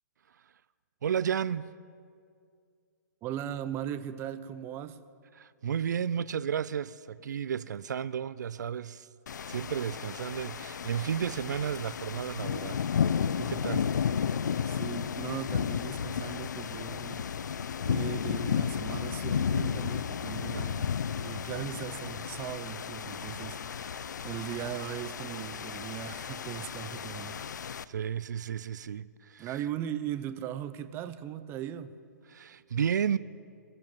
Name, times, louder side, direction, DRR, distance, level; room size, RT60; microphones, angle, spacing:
voice 1, 1.0-1.7 5.4-9.1 9.5-12.8 13.2-13.9 20.5-20.7 27.9-29.6 32.3-33.2, right 8 dB, 75° right, 0.4 m, -33 dB
voice 2, 3.2-5.0 14.6-17.2 17.8-20.9 21.2-27.4 29.4-31.9, right 10 dB, 25° right, 0.7 m, -38 dB
sound 1, 9.3-27.8, left 7 dB, 80° left, 0.5 m, -33 dB
23.0 x 11.0 x 5.4 m
hypercardioid pair, 135°, 10 cm